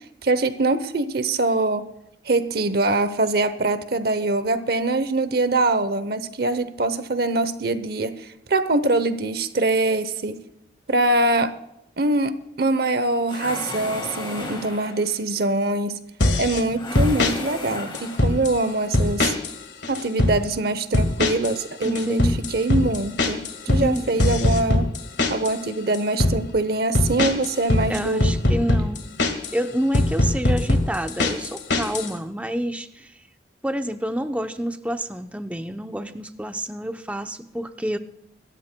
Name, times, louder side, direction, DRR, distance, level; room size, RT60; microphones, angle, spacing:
voice 1, 0.2-1.9 2.3-10.4 10.9-11.5 12.0-12.3 12.6-16.0 16.4-19.3 19.9-23.4 23.7-24.9 25.3-28.3, right 2 dB, 55° right, 12 dB, 0.8 m, -23 dB
sound 1, 13.3-15.1 16.7-18.5, left 2 dB, 25° left, 1.7 m, -34 dB
sound 2, 16.2-16.6 16.9-17.3 17.9-18.6 18.9-19.6 19.8-20.4 20.9-21.6 21.8-25.6 25.9-26.4 26.9-29.5 29.9-32.1, left 2 dB, 70° left, 1.8 m, -21 dB
voice 2, 21.8-22.4 23.7-24.3 27.9-33.1 33.6-38.0, equal, 5° right, 7 dB, 0.7 m, -28 dB
26.0 x 13.5 x 2.2 m, 0.82 s
head